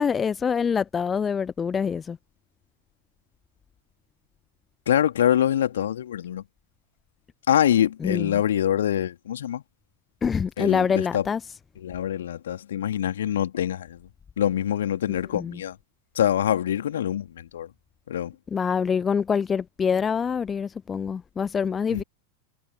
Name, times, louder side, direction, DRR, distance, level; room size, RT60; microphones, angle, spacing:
voice 1, 0.0-2.2 8.0-8.3 10.2-11.4 15.3-15.6 18.5-22.0, left 6 dB, 20° left, 0.9 m, -25 dB
voice 2, 4.9-6.4 7.5-9.6 10.6-11.3 11.8-14.0 14.4-15.8 16.1-17.7 18.1-18.3 21.9-22.0, left 10 dB, 60° left, 2.8 m, -24 dB
figure-of-eight pair, 90°, 0 cm